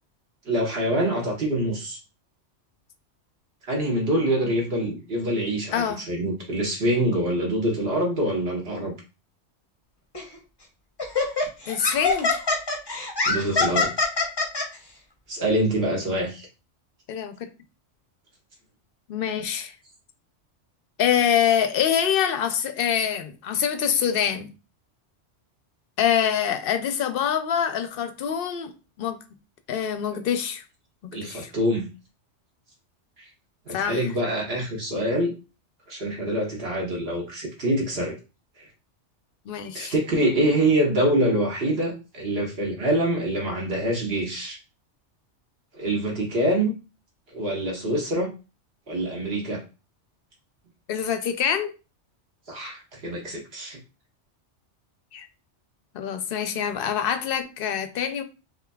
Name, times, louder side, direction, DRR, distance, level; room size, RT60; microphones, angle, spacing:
voice 1, 0.4-2.0 3.7-8.9 13.2-13.9 15.3-16.5 31.1-31.9 33.7-35.3 35.9-38.2 39.7-44.6 45.7-46.7 47.3-48.3 48.9-49.6 52.5-53.8, right 1 dB, 55° right, 1.5 m, -25 dB
Laughter, 10.1-10.4 11.0-14.6, left 3 dB, 25° left, 0.7 m, -24 dB
voice 2, 11.7-12.3 17.1-17.5 19.1-19.7 21.0-24.5 26.0-28.7 29.0-29.2 29.7-30.6 31.0-31.5 33.7-34.0 39.5-39.9 50.9-51.7 55.1-55.3 55.9-58.2, left 8 dB, 60° left, 0.7 m, -25 dB
5.9 x 2.7 x 2.3 m
omnidirectional pair, 1.2 m